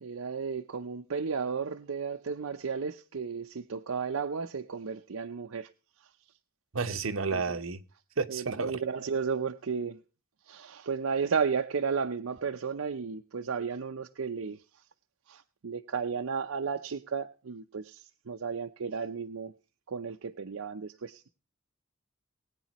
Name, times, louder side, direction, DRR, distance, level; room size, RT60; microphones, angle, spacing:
voice 1, 0.0-5.7 7.3-7.6 8.3-10.0 10.5-14.6 15.3-19.5 19.9-21.3, right 5 dB, 90° right, 0.6 m, -33 dB
voice 2, 6.7-7.8 8.2-8.8, right 4 dB, 75° right, 1.0 m, -31 dB
20.5 x 9.1 x 3.0 m
head